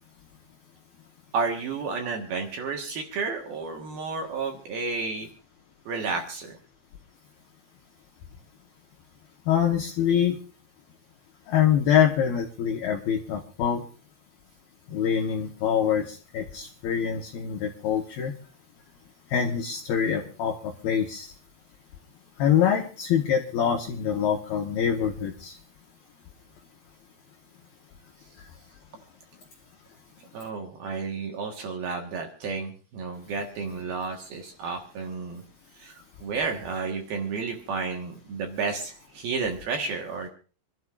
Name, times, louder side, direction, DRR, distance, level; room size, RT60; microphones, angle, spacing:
voice 1, 1.3-5.3 5.9-6.6 30.3-35.4 35.7-40.3, right 4 dB, 65° right, 3 dB, 2.7 m, -31 dB
voice 2, 9.5-10.4 11.5-13.8 14.9-18.3 19.3-21.3 22.4-25.6, left 8 dB, 75° left, 2 dB, 2.3 m, -25 dB
27.5 x 12.5 x 2.5 m, 0.39 s
omnidirectional pair, 5.8 m